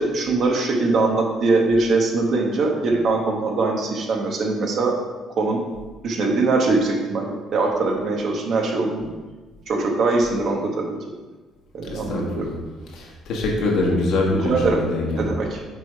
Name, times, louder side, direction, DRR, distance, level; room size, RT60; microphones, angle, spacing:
voice 1, 0.0-4.9 5.4-5.6 6.0-9.1 9.7-10.9 11.7-12.5 14.3-14.8 15.2-15.6, right 3 dB, 60° right, 1 dB, 1.1 m, -22 dB
voice 2, 11.9-12.6 12.9-15.2, left 2 dB, 75° left, -2 dB, 1.5 m, -24 dB
5.8 x 3.8 x 4.7 m, 1.2 s
cardioid pair, 100°, 0 cm